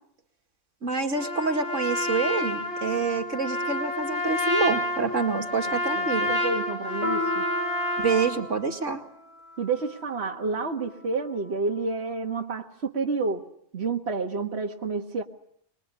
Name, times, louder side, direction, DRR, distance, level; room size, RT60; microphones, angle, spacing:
voice 1, 0.8-6.3 8.0-9.0, right 4 dB, 80° right, 4 dB, 2.6 m, -27 dB
Trumpet, 1.2-8.4, left 1 dB, 60° left, 5.4 m, -29 dB
voice 2, 5.2-7.4 9.6-13.4 13.7-15.2, right 4 dB, 60° right, 2 dB, 1.8 m, -30 dB
Piano, 7.0-12.0, left 2 dB, 25° right, 1.8 m, -37 dB
25.0 x 22.0 x 10.0 m, 0.70 s
omnidirectional pair, 1.3 m